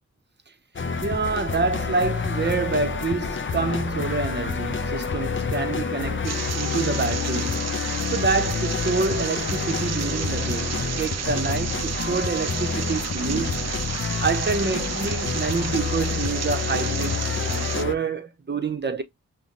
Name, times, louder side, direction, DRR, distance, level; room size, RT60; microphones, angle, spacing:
sound 1, 0.8-17.9, left 5 dB, 40° left, 0.6 m, -28 dB
voice 1, 1.0-7.8 8.1-13.6 14.2-19.0, right 4 dB, 35° right, 0.8 m, -27 dB
sound 2, 6.2-17.8, right 8 dB, 60° right, 0.4 m, -32 dB
5.6 x 2.2 x 2.5 m
cardioid pair, 55°, 31 cm